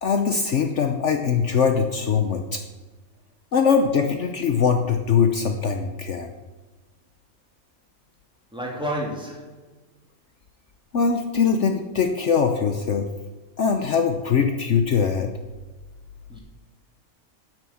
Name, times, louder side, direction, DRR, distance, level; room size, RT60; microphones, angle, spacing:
voice 1, 0.0-2.6 3.5-6.3 10.9-13.1 13.6-15.3, left 6 dB, 60° left, 6 dB, 1.1 m, -22 dB
voice 2, 8.5-9.6 16.3-16.4, equal, 5° right, -3 dB, 3.1 m, -30 dB
9.4 x 9.1 x 7.1 m, 1.2 s
omnidirectional pair, 1.5 m